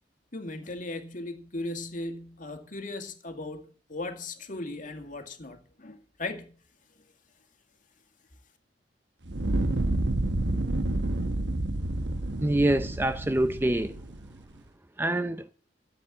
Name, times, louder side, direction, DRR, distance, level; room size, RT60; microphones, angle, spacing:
voice 1, 0.3-6.5, left 2 dB, 45° left, 2.1 m, -37 dB
Fire, 9.2-14.4, right 1 dB, 75° right, 1.2 m, -29 dB
voice 2, 12.4-13.9 15.0-15.4, right 1 dB, 10° right, 0.6 m, -25 dB
13.5 x 7.7 x 7.6 m
head